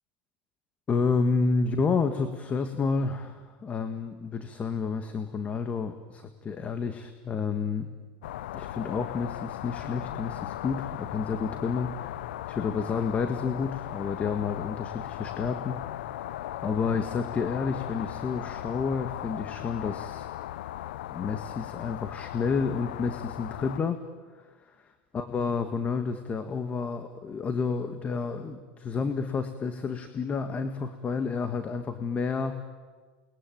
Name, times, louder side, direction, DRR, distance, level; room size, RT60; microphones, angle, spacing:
voice 1, 0.9-7.9 8.5-12.2 12.5-15.8 16.1-16.2 16.6-20.3 21.1-24.0 24.3-24.8 25.1-32.7, left 5 dB, 25° left, 8 dB, 1.7 m, -30 dB
sound 1, 8.2-23.8, left 13 dB, 85° left, 0.7 m, -37 dB
29.0 x 21.5 x 9.3 m, 1.5 s
supercardioid pair, 115°, 5 cm